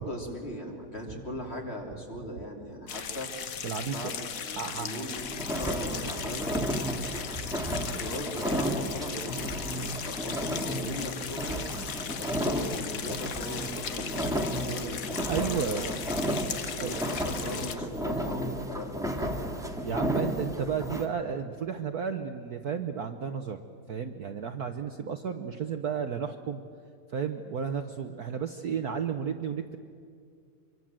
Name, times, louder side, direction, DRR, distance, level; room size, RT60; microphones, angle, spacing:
voice 1, 0.0-3.3 3.9-6.7 7.8-11.6 12.2-16.1 16.8-19.6 25.0-25.1, equal, 30° left, 0 dB, 3.4 m, -39 dB
sound 1, 2.9-17.8, left 7 dB, 50° left, 1.2 m, -38 dB
voice 2, 3.6-4.0 4.6-5.1 15.3-15.9 16.7-17.0 19.8-23.6 23.9-26.6 27.1-29.8, right 7 dB, 55° right, 6 dB, 1.2 m, -32 dB
sound 2, 5.1-21.1, equal, ahead, 1.6 m, -33 dB
25.5 x 23.5 x 7.6 m, 2.2 s
omnidirectional pair, 2.3 m